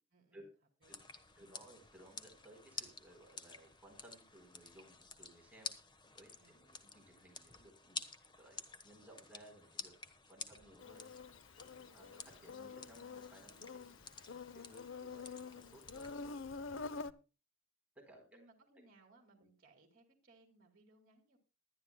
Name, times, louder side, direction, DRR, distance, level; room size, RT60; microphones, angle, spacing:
voice 1, 0.1-0.4 0.8-1.0 1.4-1.6 2.0-2.2 6.4-6.6 10.5-10.6 11.1-11.2 13.5-13.8 16.9-17.3 18.3-21.4, right 2 dB, 45° right, 4 dB, 2.3 m, -67 dB
sound 1, 0.8-16.4, left 5 dB, 25° left, 1.2 m, -52 dB
voice 2, 1.4-5.7 6.1-8.0 8.4-9.9 10.3-11.1 11.7-14.0 14.5-16.3 18.0-18.2 19.4-19.5, right 1 dB, 5° right, 1 dB, 3.9 m, -60 dB
Insect, 10.8-17.1, left 4 dB, 65° left, 0.6 m, -47 dB
20.5 x 11.5 x 2.2 m, 0.32 s
head